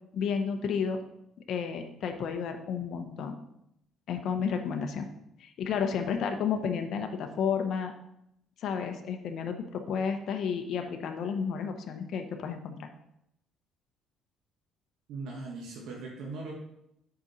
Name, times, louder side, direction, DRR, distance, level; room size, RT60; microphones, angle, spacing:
voice 1, 0.1-1.0 1.5-3.4 4.1-5.1 5.4-7.9 8.6-12.9, left 6 dB, 60° left, 5 dB, 0.9 m, -31 dB
voice 2, 15.1-16.5, right 3 dB, 75° right, -2 dB, 1.5 m, -39 dB
8.1 x 5.1 x 4.2 m, 0.78 s
cardioid pair, 110°, 0 cm